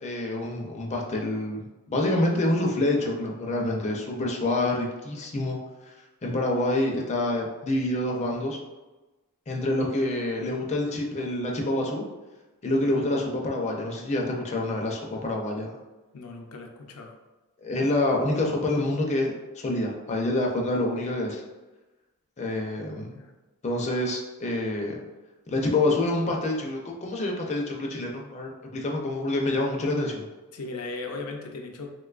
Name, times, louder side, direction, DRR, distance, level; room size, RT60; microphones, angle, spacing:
voice 1, 0.0-5.6 6.2-8.6 9.5-12.0 12.6-15.8 17.6-21.4 22.4-23.1 23.6-25.0 25.5-30.2, left 1 dB, 30° left, 0 dB, 0.4 m, -27 dB
voice 2, 16.1-17.1 22.8-23.3 30.5-31.9, left 3 dB, 85° left, 3 dB, 0.5 m, -38 dB
3.7 x 2.2 x 2.4 m, 1.1 s
head